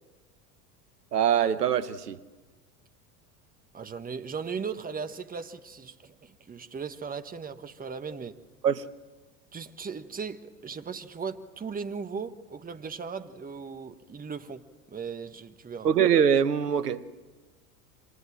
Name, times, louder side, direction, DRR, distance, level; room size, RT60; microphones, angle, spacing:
voice 1, 1.1-2.2 8.6-8.8 15.8-17.1, right 8 dB, 80° right, 1.1 m, -23 dB
voice 2, 3.7-8.4 9.5-15.9, right 5 dB, 20° right, 1.4 m, -37 dB
29.0 x 25.5 x 7.6 m
figure-of-eight pair, 80°, 47 cm